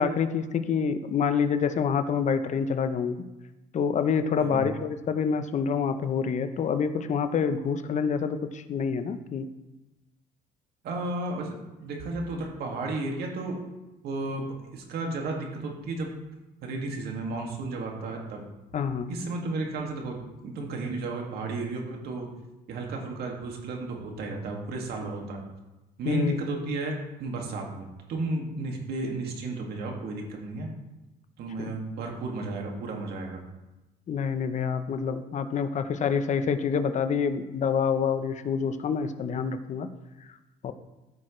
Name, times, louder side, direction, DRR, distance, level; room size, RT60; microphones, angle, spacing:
voice 1, 0.0-3.2 3.7-9.5 18.7-19.1 26.1-26.4 31.6-31.7 34.1-39.9 40.6-40.7, left 6 dB, 45° left, 10 dB, 0.8 m, -27 dB
voice 2, 4.4-4.7 10.8-13.6 14.0-16.1 16.6-18.4 19.1-22.3 22.7-25.4 26.0-26.9 27.2-30.7 31.4-33.4, right 2 dB, 70° right, 0 dB, 2.2 m, -33 dB
14.5 x 6.4 x 3.2 m, 1.0 s
cardioid pair, 110°, 17 cm